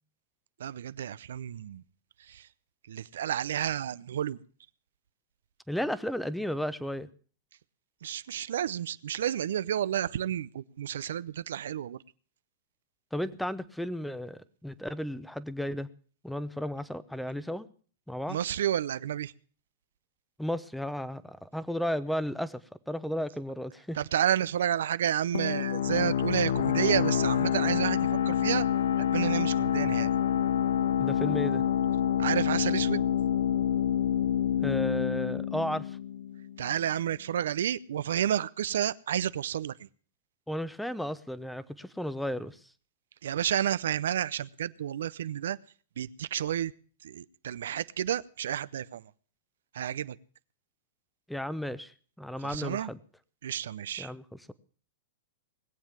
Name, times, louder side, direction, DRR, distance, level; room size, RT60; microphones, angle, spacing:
voice 1, 0.6-1.8 2.9-4.4 8.0-12.0 18.3-19.3 24.0-28.6 29.1-30.1 32.2-33.0 36.6-39.7 43.2-45.6 46.0-46.7 47.0-49.0 49.8-50.1 52.5-52.9 53.4-54.1, right 10 dB, 75° right, 16 dB, 0.6 m, -30 dB
voice 2, 5.7-7.1 13.1-15.9 16.2-17.7 18.1-18.4 20.4-22.6 22.9-24.0 31.0-31.6 34.6-36.0 40.5-42.6 51.3-51.9 52.2-53.0 54.0-54.5, equal, ahead, 16 dB, 0.8 m, -34 dB
sound 1, 25.3-36.7, left 9 dB, 75° left, 0.9 m, -27 dB
20.0 x 7.4 x 7.3 m, 0.43 s
hypercardioid pair, 130°, 0 cm